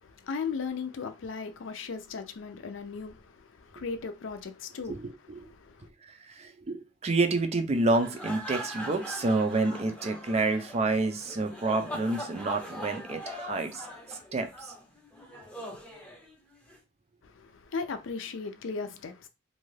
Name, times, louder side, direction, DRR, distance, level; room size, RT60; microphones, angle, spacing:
voice 1, 0.0-5.0 5.5-5.9 17.2-19.3, left 5 dB, 85° left, 0.4 m, -37 dB
voice 2, 4.9-5.5 6.3-14.7, right 2 dB, 35° right, 0.4 m, -29 dB
sound 1, 7.7-16.8, equal, 5° left, 0.6 m, -41 dB
2.6 x 2.3 x 3.2 m
head